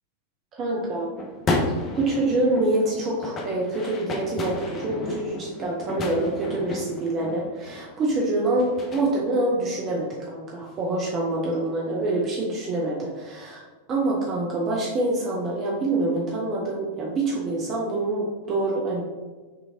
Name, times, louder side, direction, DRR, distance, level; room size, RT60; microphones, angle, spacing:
voice 1, 0.5-1.1 1.9-19.0, right 2 dB, 30° right, -3 dB, 0.8 m, -26 dB
sound 1, 1.2-9.0, left 2 dB, 25° left, 0.7 m, -32 dB
6.3 x 3.0 x 2.7 m, 1.3 s
figure-of-eight pair, 90°, 0 cm